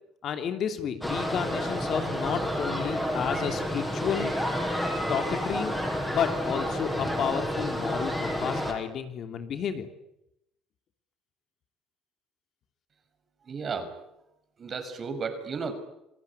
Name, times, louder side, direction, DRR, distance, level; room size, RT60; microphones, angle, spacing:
voice 1, 0.2-4.3 5.1-5.8 6.1-9.9, left 8 dB, 55° left, 7 dB, 3.1 m, -31 dB
sound 1, 1.0-8.7, equal, 5° left, 6.7 m, -30 dB
voice 2, 13.5-13.9 14.6-15.7, right 5 dB, 40° right, 9 dB, 5.7 m, -33 dB
27.5 x 17.0 x 9.9 m, 0.85 s
supercardioid pair, 90°, 0 cm